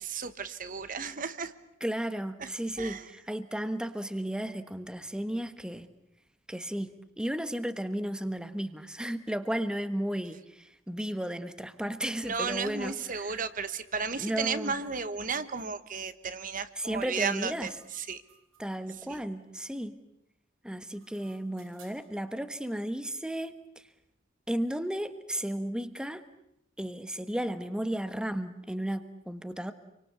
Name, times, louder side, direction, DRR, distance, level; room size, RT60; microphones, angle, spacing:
voice 1, 0.1-1.5 2.4-2.5 2.8-3.0 12.2-17.7 18.0-18.2 19.1-19.2, right 5 dB, 40° right, 12 dB, 1.2 m, -34 dB
voice 2, 1.8-5.9 6.5-13.5 14.2-14.8 16.7-17.7 18.6-20.0 20.6-23.9 24.5-26.2 26.8-29.7, right 1 dB, 5° right, 11 dB, 1.2 m, -34 dB
sound 1, 15.6-15.7 16.8-19.0 20.6-22.2, right 7 dB, 85° right, 7.5 m, -62 dB
28.0 x 24.5 x 8.3 m, 0.78 s
head